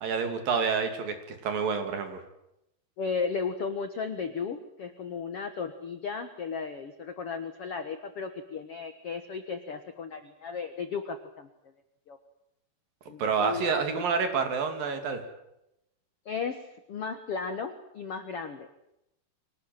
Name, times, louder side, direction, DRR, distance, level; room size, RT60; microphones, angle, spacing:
voice 1, 0.0-2.2 13.2-15.2, right 5 dB, 60° right, 7 dB, 4.1 m, -28 dB
voice 2, 3.0-11.5 12.1-12.2 13.1-14.0 16.2-18.7, left 5 dB, 65° left, 8 dB, 1.5 m, -35 dB
25.0 x 19.0 x 9.2 m, 0.85 s
omnidirectional pair, 4.6 m